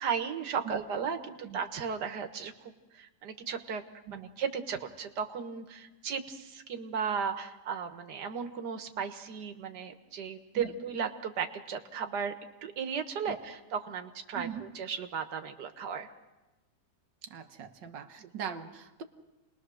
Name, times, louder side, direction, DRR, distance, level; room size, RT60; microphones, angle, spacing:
voice 1, 0.0-3.8 4.1-12.3 12.6-16.1, right 6 dB, 70° right, 7 dB, 1.9 m, -35 dB
voice 2, 14.3-14.6 17.2-19.0, right 8 dB, 90° right, 6 dB, 1.8 m, -41 dB
29.5 x 21.0 x 6.3 m, 1.1 s
omnidirectional pair, 1.9 m